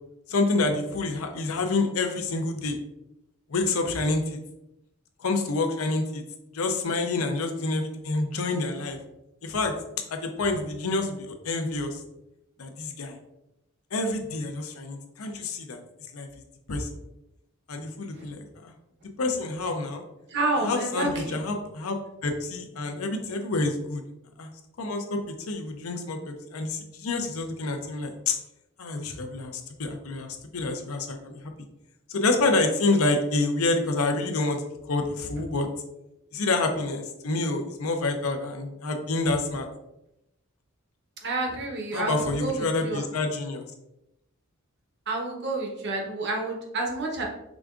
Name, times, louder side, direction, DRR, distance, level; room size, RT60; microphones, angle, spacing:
voice 1, 0.3-2.8 3.5-4.4 5.2-6.2 6.5-9.0 9.4-9.7 10.1-12.0 12.6-13.2 13.9-15.8 16.1-16.3 16.7-16.9 17.7-18.7 19.2-20.0 20.6-22.0 22.2-24.0 24.4-24.5 24.8-28.4 28.8-31.5 32.1-35.7 36.3-39.7 41.9-43.7, left 3 dB, 80° left, 5 dB, 0.7 m, -28 dB
voice 2, 20.3-21.4 41.2-43.0 45.1-47.2, right 2 dB, 55° right, 1 dB, 0.9 m, -29 dB
5.0 x 3.4 x 2.4 m, 0.87 s
head